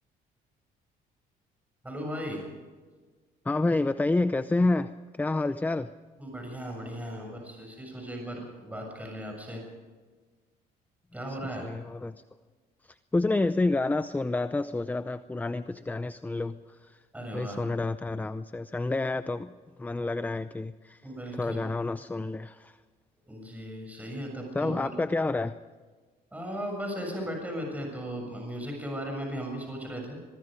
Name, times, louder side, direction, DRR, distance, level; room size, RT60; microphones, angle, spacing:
voice 1, 1.8-2.5 6.2-9.6 11.1-11.7 17.1-17.6 20.0-20.1 21.0-21.7 23.3-24.9 26.3-30.2, equal, 10° right, 1 dB, 7.0 m, -37 dB
voice 2, 3.4-5.9 11.6-12.1 12.8-17.0 17.3-19.5 19.8-21.0 21.3-22.8 24.5-25.6, left 2 dB, 10° left, 12 dB, 0.6 m, -29 dB
23.5 x 22.5 x 5.1 m, 1.4 s
cardioid pair, 110°, 17 cm